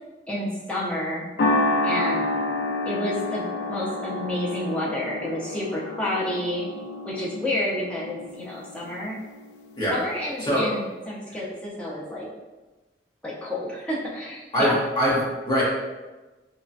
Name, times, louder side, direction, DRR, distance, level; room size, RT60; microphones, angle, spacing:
voice 1, 0.3-1.2 1.8-2.3 2.8-6.7 7.0-9.2 9.9-12.3 13.2-14.8, left 1 dB, 5° left, -6 dB, 0.5 m, -29 dB
sound 1, 1.4-9.9, left 2 dB, 70° left, 0.3 m, -29 dB
voice 2, 14.5-15.6, equal, 25° left, -8 dB, 0.9 m, -23 dB
2.9 x 2.2 x 2.6 m, 1.2 s
head